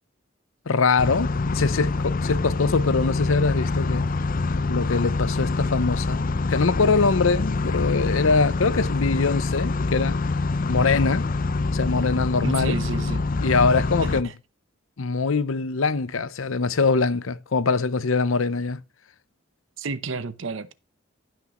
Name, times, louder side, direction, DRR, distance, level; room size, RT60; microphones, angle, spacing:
voice 1, 0.7-4.1 4.6-10.2 10.7-11.3 11.7-12.8 13.4-14.3 15.0-18.8, left 4 dB, 80° left, 0.7 m, -23 dB
sound 1, 1.0-14.2, left 3 dB, 45° left, 0.5 m, -25 dB
voice 2, 12.4-13.2 14.0-14.3 19.8-20.7, right 4 dB, 65° right, 0.8 m, -31 dB
15.0 x 6.2 x 3.0 m
head